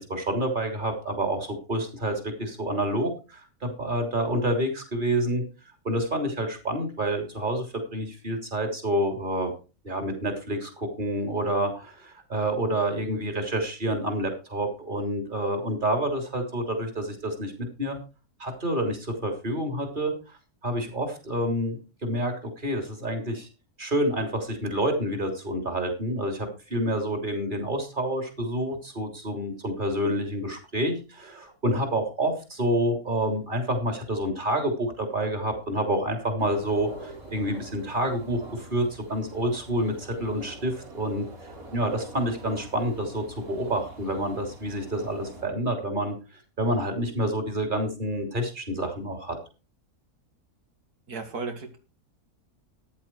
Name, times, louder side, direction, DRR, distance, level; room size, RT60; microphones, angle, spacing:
voice 1, 0.0-5.4 5.8-9.5 9.8-18.0 18.4-20.4 20.6-23.5 23.8-41.2 41.7-46.2 46.6-49.4, right 1 dB, 30° right, 4 dB, 3.6 m, -28 dB
sound 1, 36.4-45.4, right 1 dB, 65° right, 3.8 m, -45 dB
voice 2, 51.1-51.8, right 4 dB, 80° right, 5 dB, 2.4 m, -34 dB
14.0 x 10.5 x 4.6 m, 0.34 s
omnidirectional pair, 1.6 m